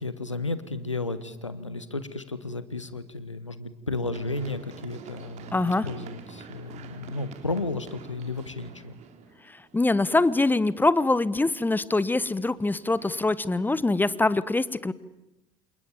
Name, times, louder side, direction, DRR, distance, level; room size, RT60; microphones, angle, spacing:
voice 1, 0.0-9.0, left 3 dB, 90° left, 13 dB, 1.4 m, -33 dB
Run, 4.1-10.0 11.8-13.3, right 6 dB, 50° right, 3.7 m, -47 dB
voice 2, 5.5-5.9 9.7-14.9, left 2 dB, 10° left, 18 dB, 1.2 m, -24 dB
28.5 x 27.5 x 7.3 m, 0.94 s
figure-of-eight pair, 60°, 15 cm